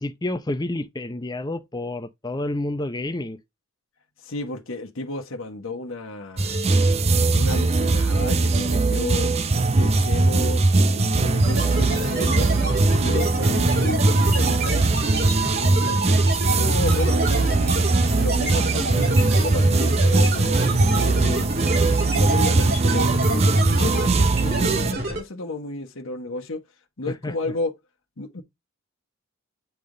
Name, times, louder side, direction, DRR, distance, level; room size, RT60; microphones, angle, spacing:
voice 1, 0.0-3.4 27.1-27.5, left 1 dB, 20° left, 0.6 m, -29 dB
voice 2, 4.2-6.6 7.3-9.3 9.8-12.5 13.0-14.8 15.6-17.8 18.2-21.4 22.0-26.6 27.0-27.7 28.2-28.4, left 2 dB, 75° left, 1.2 m, -32 dB
sound 1, 6.4-24.9, right 3 dB, 30° right, 0.5 m, -20 dB
sound 2, 11.4-25.2, right 1 dB, 50° right, 2.7 m, -28 dB
8.6 x 3.5 x 3.8 m
head